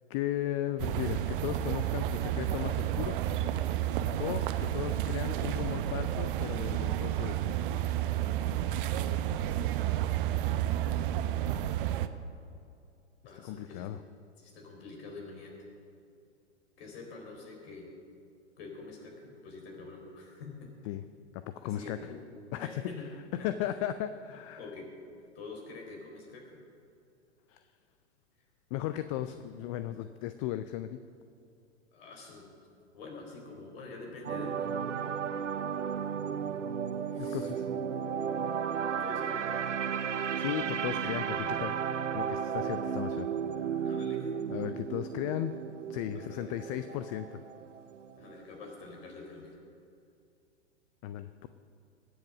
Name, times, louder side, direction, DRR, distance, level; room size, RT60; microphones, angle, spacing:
voice 1, 0.1-3.2 4.2-7.5 13.4-14.0 20.9-21.0 21.3-22.0 22.5-22.8 23.4-24.6 27.5-27.7 28.7-31.0 37.2-37.7 40.4-41.8 42.1-43.9 44.5-45.5 45.9-47.4 51.0-51.5, left 12 dB, 30° left, 11 dB, 0.4 m, -36 dB
sound 1, 0.8-12.1, right 12 dB, 45° right, 0.8 m, -31 dB
voice 2, 13.2-13.9 14.4-15.5 16.8-17.9 18.6-20.7 21.6-22.2 22.5-23.1 23.4-23.9 24.6-24.9 25.3-26.5 29.1-29.4 31.9-32.6 32.9-34.9 37.0-37.5 38.9-40.1 43.8-44.2 44.5-44.6 46.1-46.5 48.2-49.6, left 3 dB, 55° left, 1 dB, 4.2 m, -46 dB
sound 2, 34.2-48.4 48.7-48.9, right 7 dB, 90° right, 0.6 m, -34 dB
20.5 x 7.9 x 6.1 m, 2.6 s
hypercardioid pair, 110°, 35 cm